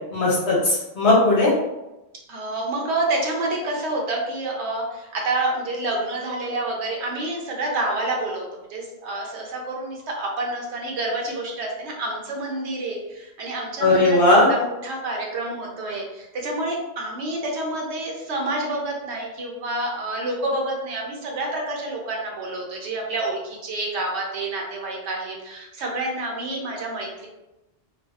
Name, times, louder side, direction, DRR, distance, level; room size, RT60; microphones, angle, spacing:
voice 1, 0.1-1.5 13.8-14.5, left 2 dB, 75° left, -3 dB, 1.0 m, -17 dB
voice 2, 2.3-27.3, right 2 dB, 85° right, -1 dB, 0.9 m, -28 dB
2.5 x 2.1 x 2.3 m, 0.97 s
omnidirectional pair, 1.1 m